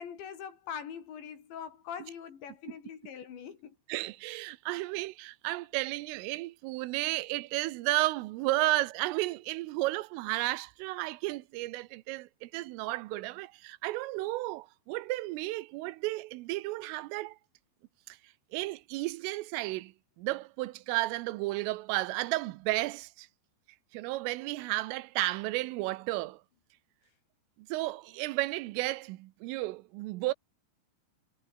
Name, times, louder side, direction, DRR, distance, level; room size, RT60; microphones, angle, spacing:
voice 1, 0.0-3.8, left 8 dB, 65° left, 5.7 m, -42 dB
voice 2, 3.9-17.4 18.1-18.2 18.5-23.3 23.9-26.4 27.6-30.3, right 19 dB, 90° right, 3.5 m, -33 dB
omnidirectional pair, 5.7 m